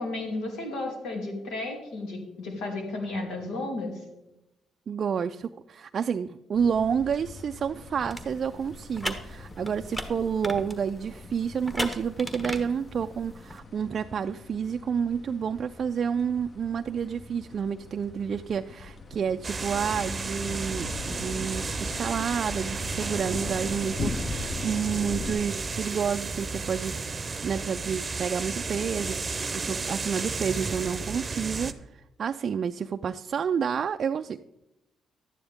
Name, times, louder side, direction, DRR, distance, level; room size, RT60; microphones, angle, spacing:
voice 1, 0.0-3.9, left 2 dB, 85° left, 2 dB, 2.6 m, -33 dB
voice 2, 4.9-26.9 27.4-34.4, right 7 dB, 50° right, 8 dB, 0.3 m, -29 dB
sound 1, 6.5-25.3, left 3 dB, 40° left, 0.9 m, -41 dB
sound 2, 8.0-13.6, equal, 10° left, 1.2 m, -38 dB
sound 3, 19.4-31.7, right 4 dB, 30° right, 0.7 m, -33 dB
11.5 x 9.5 x 3.5 m, 0.91 s
cardioid pair, 90°, 0 cm